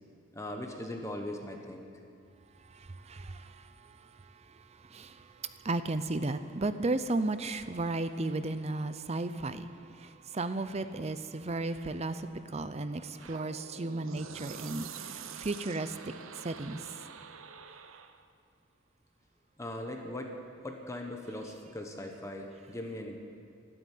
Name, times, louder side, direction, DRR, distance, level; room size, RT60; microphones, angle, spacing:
voice 1, 0.3-1.9 19.6-20.3 20.6-23.2, left 1 dB, 15° left, 2 dB, 1.0 m, -39 dB
voice 2, 2.7-4.0 4.5-4.6 4.8-9.7 10.0-15.9 16.4-16.8, right 2 dB, 30° right, 11 dB, 0.5 m, -34 dB
sound 1, 13.2-18.3, right 6 dB, 75° right, 0.8 m, -46 dB
13.0 x 12.0 x 9.1 m, 2.4 s
head